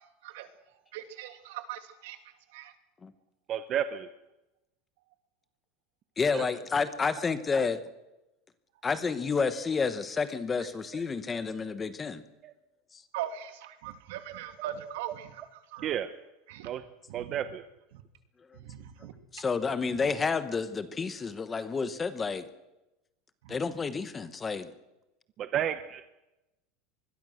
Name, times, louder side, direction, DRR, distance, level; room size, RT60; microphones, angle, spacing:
voice 1, 0.9-2.2 2.5-2.7 13.1-15.3 15.7-15.9 16.5-16.7 17.1-17.3 17.9-18.0 18.6-19.1 23.4-23.6, right 11 dB, 70° right, 8 dB, 2.8 m, -40 dB
voice 2, 3.5-4.1 6.3-6.4 12.4-12.5 15.8-16.1 16.6-16.8 17.1-17.6 25.4-26.0, right 10 dB, 25° right, 11 dB, 0.9 m, -31 dB
voice 3, 6.2-7.8 8.8-12.2 12.9-13.0 19.3-22.5 23.5-24.7, left 5 dB, 15° left, 12 dB, 1.0 m, -30 dB
25.0 x 21.5 x 6.4 m, 0.95 s
supercardioid pair, 175°, 0 cm